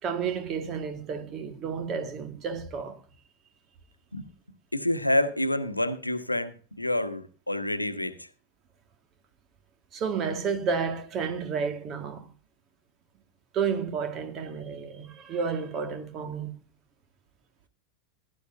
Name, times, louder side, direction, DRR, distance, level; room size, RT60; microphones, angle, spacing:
voice 1, 0.0-3.0 9.9-12.3 13.5-16.5, right 6 dB, 35° right, 1.8 m, -31 dB
voice 2, 4.7-8.3, left 1 dB, 85° left, 1.1 m, -28 dB
16.0 x 11.0 x 2.6 m
figure-of-eight pair, 90°, 0 cm